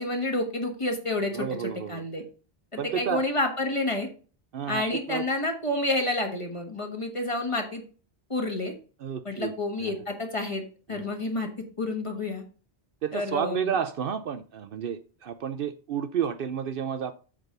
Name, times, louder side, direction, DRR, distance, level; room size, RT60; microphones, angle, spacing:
voice 1, 0.0-1.5 1.9-2.2 2.9-4.1 4.7-7.8 8.3-8.7 9.2-10.6 10.9-11.5 11.8-12.4 13.1-13.7, left 2 dB, 30° left, 3 dB, 1.5 m, -29 dB
voice 2, 1.3-2.1 2.8-3.2 4.5-5.2 9.0-9.5 9.8-9.9 10.9-11.0 13.0-17.1, right 8 dB, 65° right, 11 dB, 0.7 m, -31 dB
8.4 x 3.6 x 6.6 m, 0.38 s
omnidirectional pair, 1.1 m